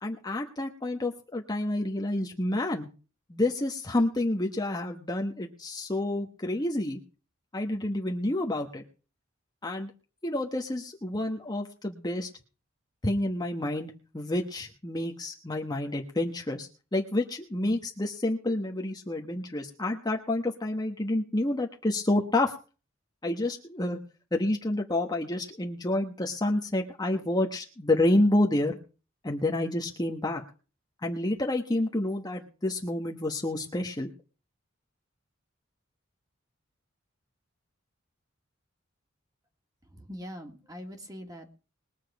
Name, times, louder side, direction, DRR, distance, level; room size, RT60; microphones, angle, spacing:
voice 1, 0.0-2.9 3.3-7.0 7.5-8.8 9.6-9.9 10.2-12.3 13.0-22.5 23.2-24.0 24.3-28.8 29.2-30.4 31.0-34.1, left 1 dB, 20° left, 1 dB, 1.2 m, -29 dB
voice 2, 39.9-41.5, equal, 20° right, 3 dB, 2.3 m, -42 dB
21.5 x 7.4 x 4.8 m, 0.36 s
head